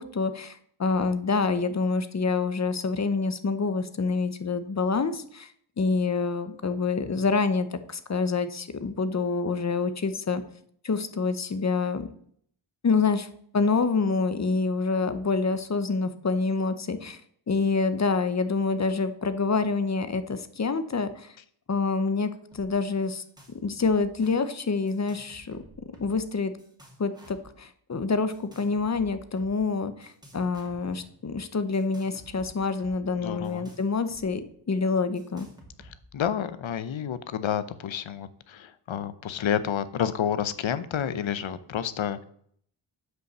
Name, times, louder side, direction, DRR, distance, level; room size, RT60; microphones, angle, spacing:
voice 1, 0.0-5.5 5.8-10.4 10.8-12.1 12.8-13.3 13.5-17.2 17.5-21.4 21.7-23.2 23.6-25.6 26.0-26.5 27.0-35.5, left 4 dB, 35° left, 12 dB, 0.7 m, -27 dB
sound 1, 22.5-22.7 22.9-23.5 23.8-24.3 24.9-26.3 26.6-27.5 28.3-29.6 30.0-31.1 31.7-34.3 34.5-34.6 35.2-36.2, equal, 10° right, 2.0 m, -52 dB
voice 2, 33.2-33.7 35.8-42.2, left 9 dB, 70° left, 14 dB, 0.8 m, -30 dB
8.0 x 5.3 x 6.6 m, 0.63 s
wide cardioid pair, 160°, 48 cm